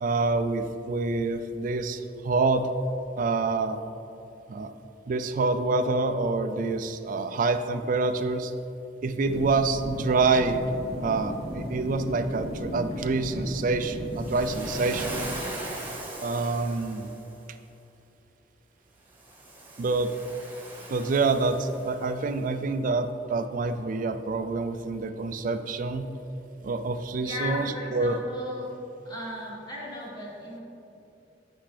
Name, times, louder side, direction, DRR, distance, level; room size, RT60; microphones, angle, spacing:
voice 1, 0.0-2.7 3.2-3.8 4.5-4.7 5.1-8.5 9.0-10.6 11.0-15.2 16.2-17.1 19.8-20.1 20.9-26.1 26.6-28.2, right 3 dB, 50° right, 10 dB, 0.4 m, -27 dB
sound 1, 9.3-15.3, equal, 60° left, 1.1 m, -36 dB
Waves surf, 14.1-17.3 19.1-22.2, right 2 dB, 10° right, 1.1 m, -39 dB
voice 2, 27.2-28.7 29.0-30.6, left 1 dB, 25° left, -5 dB, 1.6 m, -36 dB
8.3 x 5.8 x 3.3 m, 2.8 s
head